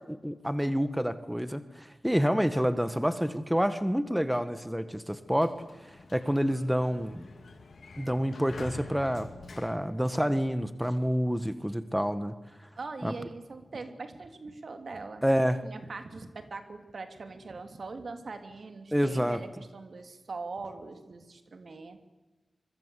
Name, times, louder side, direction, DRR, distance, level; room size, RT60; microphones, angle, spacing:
voice 1, 0.1-5.5 6.1-7.2 8.0-9.3 9.6-12.3 13.0-13.1 15.2-15.6 18.9-19.4, equal, 5° right, 11 dB, 1.4 m, -28 dB
Sliding door, 5.1-10.7, left 3 dB, 80° left, 3.1 m, -48 dB
voice 2, 12.8-15.2 15.6-22.0, right 3 dB, 65° right, 7 dB, 3.0 m, -42 dB
25.5 x 23.5 x 8.3 m, 1.2 s
wide cardioid pair, 85°, 0 cm